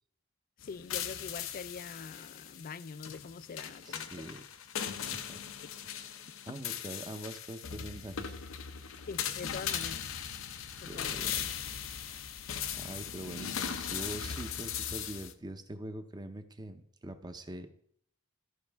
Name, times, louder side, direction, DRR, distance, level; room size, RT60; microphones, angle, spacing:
sound 1, 0.6-15.3, left 8 dB, 80° left, 0.6 m, -39 dB
voice 1, 0.6-4.3 5.9-6.0 9.1-10.1 10.8-11.1, left 5 dB, 45° left, 0.3 m, -44 dB
voice 2, 3.8-4.4 4.9-5.4 5.8-6.2 6.5-8.4 8.8-9.1 10.8-11.4 12.1-12.3 12.7-17.7, right 1 dB, 20° right, 0.7 m, -44 dB
13.0 x 5.3 x 3.5 m
head